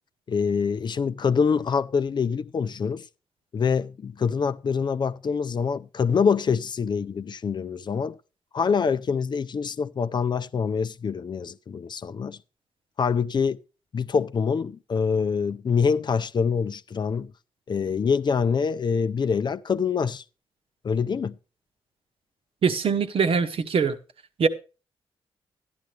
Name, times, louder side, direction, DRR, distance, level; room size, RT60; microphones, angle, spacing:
voice 1, 0.3-3.0 3.5-8.2 8.5-12.4 13.0-13.6 13.9-17.3 17.7-20.2 20.8-21.4, left 6 dB, 50° left, 0.5 m, -25 dB
voice 2, 22.6-23.9 24.4-24.5, right 5 dB, 65° right, 1.0 m, -22 dB
12.0 x 10.5 x 3.3 m
cardioid pair, 75°, 10 cm